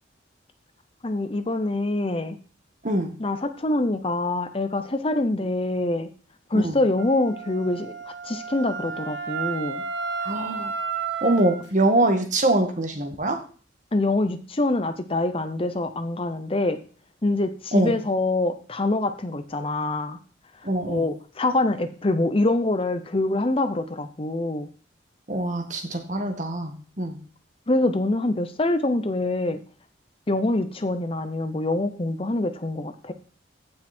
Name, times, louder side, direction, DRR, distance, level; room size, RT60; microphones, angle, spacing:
voice 1, 1.0-2.4 3.2-6.1 6.5-9.8 13.9-16.8 17.2-20.2 20.8-24.7 27.7-29.6 30.3-33.1, left 2 dB, 30° left, 10 dB, 0.7 m, -25 dB
Wind instrument woodwind instrument, 7.0-11.7, right 5 dB, 70° right, 1.3 m, -32 dB
voice 2, 10.2-10.7 11.2-13.4 17.7-17.9 20.6-21.1 25.3-27.2, right 1 dB, 40° right, 5 dB, 1.8 m, -24 dB
15.5 x 6.1 x 4.4 m, 0.40 s
head